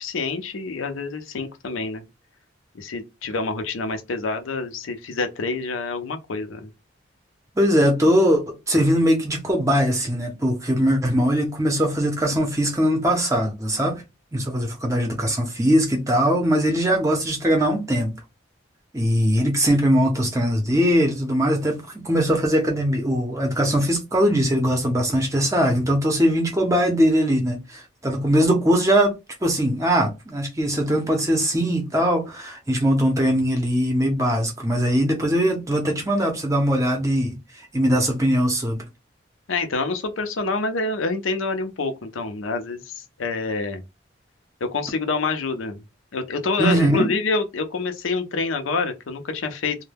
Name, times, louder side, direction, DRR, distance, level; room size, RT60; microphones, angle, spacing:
voice 1, 0.0-2.0 2.7-6.7 39.5-43.8 44.6-45.8 46.1-49.8, left 3 dB, 85° left, 0.5 m, -27 dB
voice 2, 7.6-14.0 14.3-18.2 18.9-29.1 29.4-37.4 37.7-38.8 46.6-47.1, equal, 15° right, 0.6 m, -21 dB
2.2 x 2.1 x 3.3 m
head